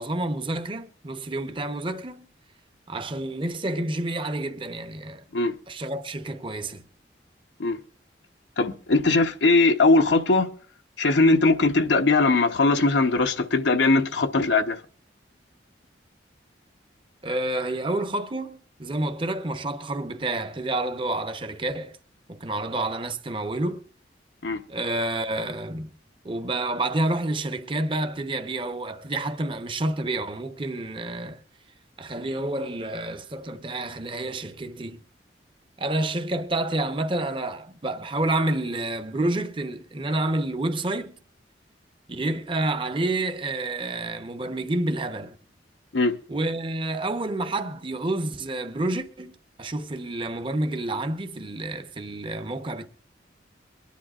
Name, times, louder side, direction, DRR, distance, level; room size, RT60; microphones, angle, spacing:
voice 1, 0.0-2.3 2.9-5.2 5.7-6.8 17.2-22.0 22.3-23.8 24.7-25.9 26.2-31.4 32.0-35.0 35.8-41.1 42.1-45.4 46.3-49.3 49.6-52.9, right 2 dB, 30° right, 0.8 m, -29 dB
voice 2, 8.6-10.5 11.0-14.8 24.4-24.6 45.9-46.1, left 3 dB, 80° left, 0.8 m, -20 dB
23.5 x 10.5 x 2.4 m
head